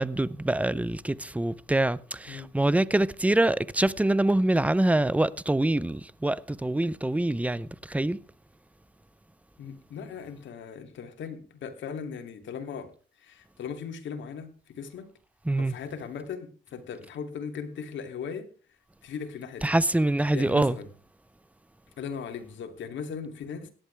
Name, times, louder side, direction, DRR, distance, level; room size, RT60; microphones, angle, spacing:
voice 1, 0.0-8.2 15.5-15.7 19.6-20.8, right 1 dB, 5° right, 0.7 m, -25 dB
voice 2, 9.6-12.9 13.2-15.1 15.6-18.5 19.0-19.8 20.3-20.9 22.0-23.7, left 6 dB, 70° left, 3.1 m, -38 dB
17.5 x 11.5 x 3.4 m
cardioid pair, 90°, 20 cm